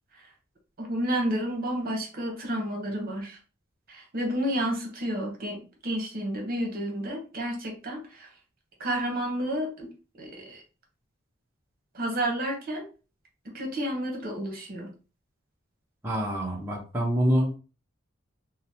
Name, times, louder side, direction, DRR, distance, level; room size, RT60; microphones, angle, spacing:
voice 1, 0.8-3.4 3.9-8.3 8.8-9.9 10.2-10.6 11.9-12.9 13.5-14.9, right 1 dB, 45° right, 1 dB, 0.8 m, -31 dB
voice 2, 16.0-17.6, equal, 10° right, -4 dB, 0.5 m, -26 dB
2.8 x 2.0 x 2.7 m, 0.34 s
head